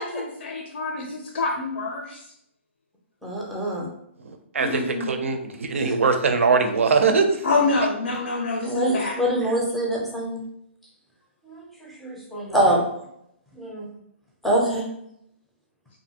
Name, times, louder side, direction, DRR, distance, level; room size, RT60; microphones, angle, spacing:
voice 1, 0.0-2.2 4.6-5.1 7.4-9.1, left 3 dB, 70° left, 1 dB, 0.5 m, -26 dB
voice 2, 3.2-3.9 5.8-5.9 8.6-10.4 11.5-12.8 13.6-13.9 14.4-14.8, right 1 dB, ahead, -2 dB, 0.4 m, -24 dB
voice 3, 4.3-7.4, right 4 dB, 85° right, 7 dB, 0.4 m, -21 dB
2.7 x 2.5 x 2.7 m, 0.75 s
hypercardioid pair, 155°, 7 cm